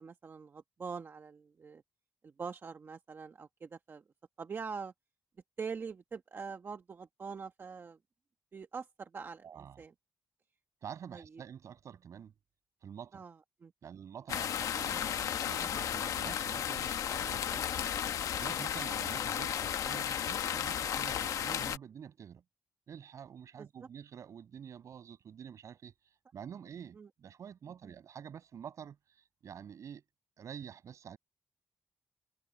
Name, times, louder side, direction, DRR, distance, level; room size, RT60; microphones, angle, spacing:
voice 1, 0.0-1.8 2.2-4.0 4.4-4.9 5.6-8.0 8.5-9.9 11.1-11.2 13.1-13.3 13.6-13.7 17.8-17.9 23.6-23.7 26.9-27.1, right 5 dB, 40° right, 1.1 m, -43 dB
voice 2, 9.4-9.8 10.8-12.3 12.8-13.2 13.8-22.4 22.9-25.9 26.3-30.0 30.4-31.2, right 8 dB, 70° right, 6.3 m, -48 dB
sound 1, 14.3-21.8, left 9 dB, 85° left, 1.1 m, -34 dB
cardioid pair, 110°, 6 cm